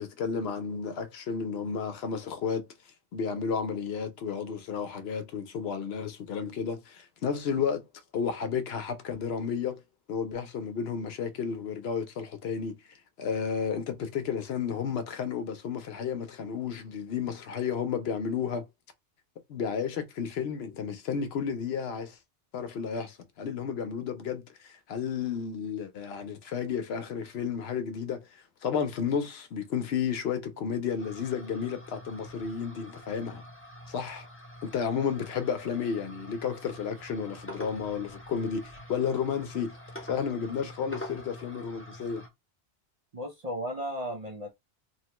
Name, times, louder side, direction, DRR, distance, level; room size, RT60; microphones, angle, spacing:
voice 1, 0.0-2.6 3.1-7.8 8.1-9.8 10.1-12.7 13.2-18.6 19.5-22.2 22.5-33.4 33.9-34.3 34.6-39.7 40.1-42.2, left 6 dB, 70° left, 0.8 m, -32 dB
sound 1, 31.0-42.3, left 1 dB, 15° left, 0.6 m, -46 dB
voice 2, 43.1-44.5, equal, 50° right, 0.5 m, -35 dB
3.0 x 2.1 x 2.9 m
omnidirectional pair, 1.1 m